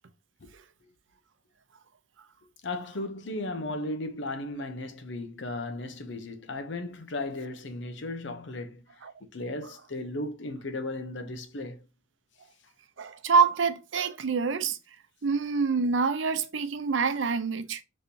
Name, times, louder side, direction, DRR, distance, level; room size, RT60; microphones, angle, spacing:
voice 1, 2.6-8.8 9.3-11.8, left 2 dB, 75° left, 0.8 m, -35 dB
voice 2, 13.0-14.8 15.2-17.8, right 5 dB, 85° right, 0.6 m, -26 dB
5.2 x 3.2 x 2.8 m
head